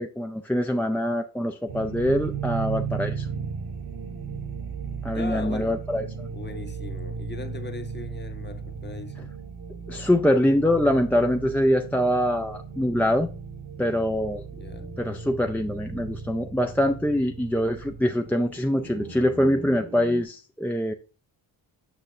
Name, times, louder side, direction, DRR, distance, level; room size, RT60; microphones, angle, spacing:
voice 1, 0.0-3.3 5.0-6.3 9.9-13.3 13.8-14.4 15.0-20.9, equal, 5° left, 0.4 m, -24 dB
sound 1, 1.7-20.2, right 6 dB, 50° right, 1.2 m, -36 dB
voice 2, 5.1-5.8 6.3-9.3 14.5-15.0, left 4 dB, 20° left, 0.8 m, -39 dB
6.8 x 6.0 x 2.6 m
cardioid pair, 60°, 48 cm